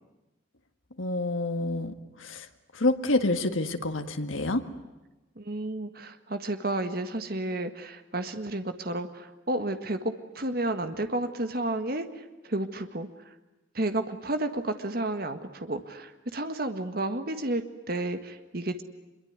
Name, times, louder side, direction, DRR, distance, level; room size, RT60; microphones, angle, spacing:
voice 1, 1.0-1.9 2.2-2.5 2.8-4.6, left 2 dB, 90° left, 7 dB, 2.0 m, -27 dB
voice 2, 5.4-13.3 13.8-18.8, right 2 dB, 50° right, 8 dB, 1.7 m, -32 dB
24.5 x 23.5 x 9.5 m, 1.1 s
head